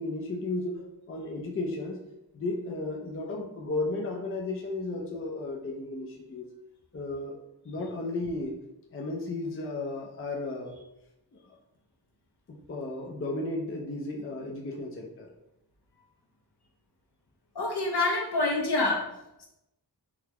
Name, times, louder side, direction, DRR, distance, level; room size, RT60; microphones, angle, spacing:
voice 1, 0.0-2.0 2.3-6.5 6.9-7.3 7.6-8.5 8.9-10.7 12.7-15.3, left 2 dB, 30° left, 0 dB, 0.5 m, -34 dB
voice 2, 17.6-19.0, left 2 dB, 60° left, 0 dB, 0.8 m, -26 dB
3.8 x 2.1 x 2.9 m, 0.89 s
wide cardioid pair, 50°, 43 cm